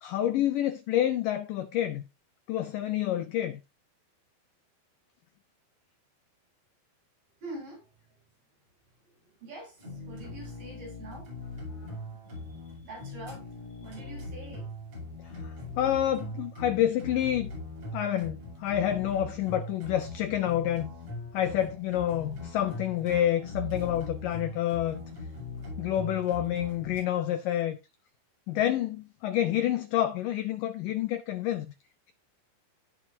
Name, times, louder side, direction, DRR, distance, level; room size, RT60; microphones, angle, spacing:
voice 1, 0.0-2.0 2.5-3.6 15.2-17.5 17.9-20.9 21.3-25.0 25.8-27.8 28.5-31.7, left 11 dB, 75° left, 2.0 m, -28 dB
voice 2, 7.4-7.9 9.4-11.3 12.8-13.5 13.8-14.7, right 2 dB, 55° right, 8.6 m, -44 dB
sound 1, 9.8-27.0, left 2 dB, 40° right, 8.3 m, -40 dB
17.0 x 5.9 x 2.7 m
omnidirectional pair, 4.7 m